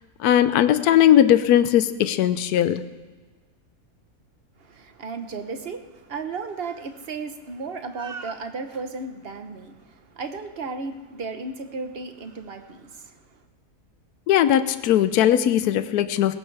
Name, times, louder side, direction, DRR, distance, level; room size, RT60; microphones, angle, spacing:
voice 1, 0.2-2.8 14.3-16.3, left 11 dB, 85° left, 12 dB, 1.2 m, -19 dB
voice 2, 4.6-13.4, right 4 dB, 45° right, 8 dB, 1.1 m, -34 dB
20.5 x 17.5 x 3.4 m, 1.3 s
omnidirectional pair, 1.6 m